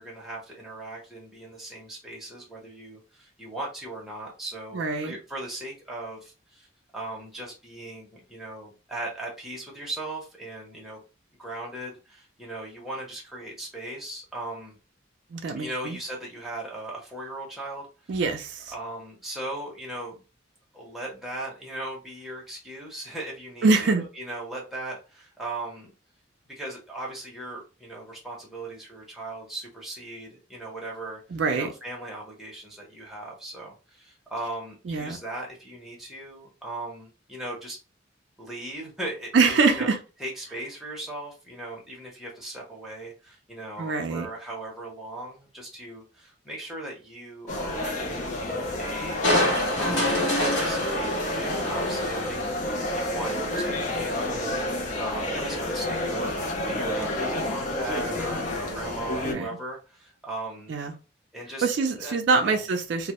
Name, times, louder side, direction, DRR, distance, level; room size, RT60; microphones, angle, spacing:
voice 1, 0.0-6.7 6.9-11.0 11.4-14.8 15.6-18.2 18.7-20.2 20.7-25.9 26.5-37.8 38.4-39.9 40.2-49.3 49.7-54.7 55.0-56.4 56.7-60.7 61.3-61.7 62.0-62.1 62.4-62.6, right 2 dB, ahead, 0.6 m, -38 dB
voice 2, 4.7-5.2 15.3-16.0 18.1-18.7 23.6-24.0 31.3-31.7 34.9-35.2 39.3-40.0 43.8-44.3 59.2-59.5 60.7-60.9 61.6-63.1, right 4 dB, 65° right, 0.4 m, -24 dB
sound 1, 47.5-59.3, left 1 dB, 40° left, 0.4 m, -29 dB
Crushing, 49.2-52.6 53.1-53.2, left 1 dB, 70° left, 0.9 m, -26 dB
2.1 x 2.0 x 2.8 m
head